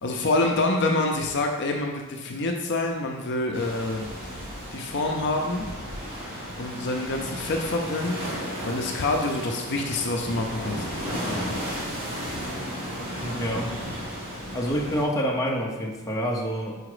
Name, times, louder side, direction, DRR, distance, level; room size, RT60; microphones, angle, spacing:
voice 1, 0.0-4.1 4.3-5.7 6.6-8.2 8.6-10.9, left 2 dB, 55° left, 2 dB, 0.6 m, -26 dB
sound 1, 3.5-15.0, equal, 40° right, 2.1 m, -34 dB
voice 2, 13.2-13.8 14.5-16.8, equal, 15° left, -1 dB, 0.8 m, -27 dB
4.9 x 4.8 x 4.9 m, 1.2 s
head